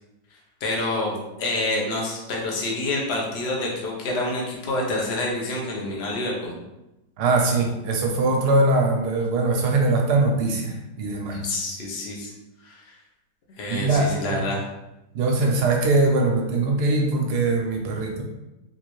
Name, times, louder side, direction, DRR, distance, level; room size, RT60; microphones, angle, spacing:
voice 1, 0.6-6.5 11.4-12.3 12.6-12.8 13.6-14.7, left 2 dB, 50° left, -2 dB, 0.8 m, -27 dB
voice 2, 7.2-11.4 13.7-14.4 15.1-18.2, right 2 dB, 75° right, 1 dB, 1.1 m, -22 dB
3.8 x 2.5 x 3.0 m, 0.96 s
omnidirectional pair, 1.9 m